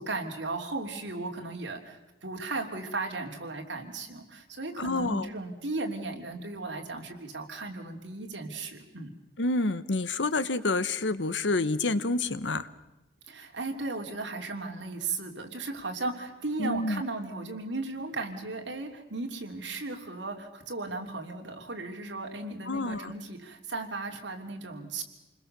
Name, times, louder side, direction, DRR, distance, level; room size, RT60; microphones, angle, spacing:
voice 1, 0.0-9.1 13.3-25.0, right 3 dB, 85° right, 3 dB, 3.1 m, -36 dB
voice 2, 4.8-5.3 9.4-12.7 16.6-17.0 22.7-23.1, left 2 dB, 85° left, 14 dB, 1.1 m, -28 dB
28.5 x 21.0 x 6.8 m, 1.0 s
head